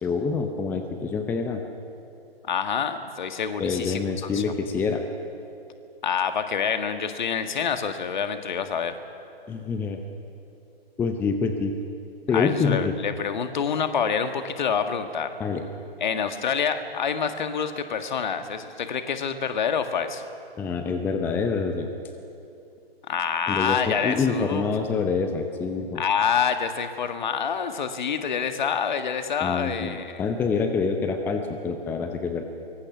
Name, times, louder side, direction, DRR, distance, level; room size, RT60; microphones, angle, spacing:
voice 1, 0.0-1.6 3.6-5.0 9.5-10.0 11.0-11.7 12.3-12.9 15.4-15.6 20.6-21.9 23.5-26.0 29.4-32.4, left 5 dB, 5° left, 6 dB, 0.7 m, -26 dB
voice 2, 2.5-4.6 6.0-9.0 12.3-15.4 16.0-20.2 23.1-24.6 25.9-30.2, left 7 dB, 50° left, 8 dB, 1.7 m, -27 dB
24.0 x 22.5 x 6.0 m, 2.7 s
figure-of-eight pair, 125°, 30 cm